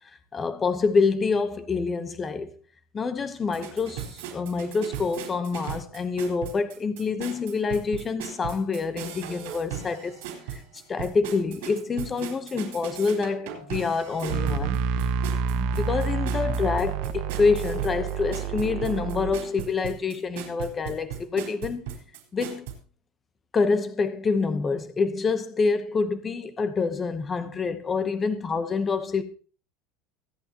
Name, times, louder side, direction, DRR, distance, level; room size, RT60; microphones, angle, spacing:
voice 1, 0.3-2.5 2.9-10.2 10.5-10.6 10.9-14.8 15.5-21.9 22.3-22.7 23.5-29.2, left 4 dB, 15° left, 0.9 m, -27 dB
sound 1, 3.4-22.7, right 9 dB, 85° right, 4.1 m, -38 dB
sound 2, 14.3-19.3, right 6 dB, 60° right, 1.2 m, -28 dB
23.5 x 8.6 x 2.9 m
cardioid pair, 175°, 0 cm